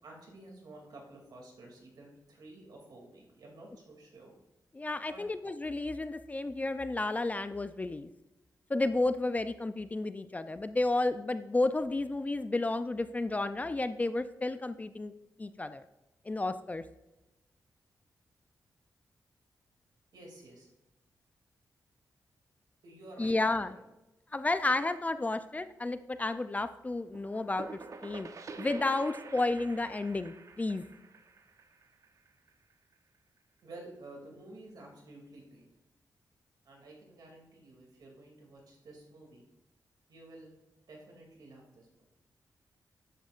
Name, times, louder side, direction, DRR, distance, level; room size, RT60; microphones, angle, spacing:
voice 1, 0.0-4.3 5.1-5.2 20.1-20.7 22.8-23.8 33.6-35.7 36.7-39.4 40.1-40.5 40.9-42.0, right 2 dB, 80° right, 0 dB, 2.5 m, -51 dB
voice 2, 4.7-8.1 8.7-15.1 15.4-15.8 16.3-16.8 23.2-23.8 24.3-28.3 28.6-30.8, left 2 dB, 20° left, 11 dB, 0.4 m, -32 dB
sound 1, 27.1-32.7, right 4 dB, 50° right, 0.7 m, -47 dB
12.5 x 8.1 x 2.5 m, 0.98 s
wide cardioid pair, 110°, 7 cm